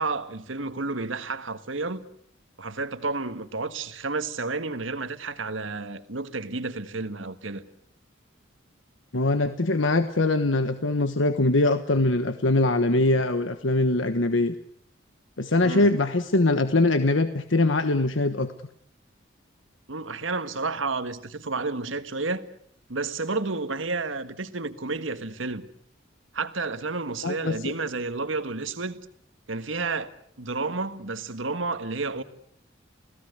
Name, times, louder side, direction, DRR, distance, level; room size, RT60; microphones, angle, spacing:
voice 1, 0.0-2.1 2.6-7.6 15.6-15.9 19.9-22.4 22.9-25.6 26.3-29.0 29.5-30.1 30.4-32.2, right 3 dB, 80° right, 1.6 m, -31 dB
voice 2, 9.1-14.5 15.4-18.5 27.2-27.7, left 2 dB, 75° left, 1.3 m, -22 dB
29.0 x 18.0 x 8.1 m
head